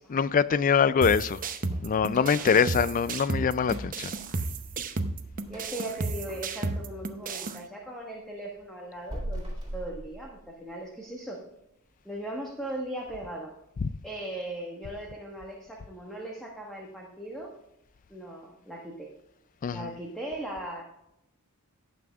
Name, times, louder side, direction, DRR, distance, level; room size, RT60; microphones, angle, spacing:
voice 1, 0.1-1.4 1.8-4.1 13.8-13.9 19.6-19.9, left 6 dB, 35° left, 0.3 m, -24 dB
sound 1, 1.0-7.6, right 3 dB, 40° right, 0.7 m, -33 dB
sound 2, 1.7-7.6 8.0-10.9 11.2-11.3 11.8-11.9 12.4-12.8 13.1-13.2 13.7-13.8, equal, 20° right, 2.6 m, -43 dB
voice 2, 5.5-11.4 12.0-13.6 14.0-17.5 18.1-19.1 19.7-20.8, right 1 dB, ahead, 1.3 m, -38 dB
18.0 x 6.0 x 2.4 m
head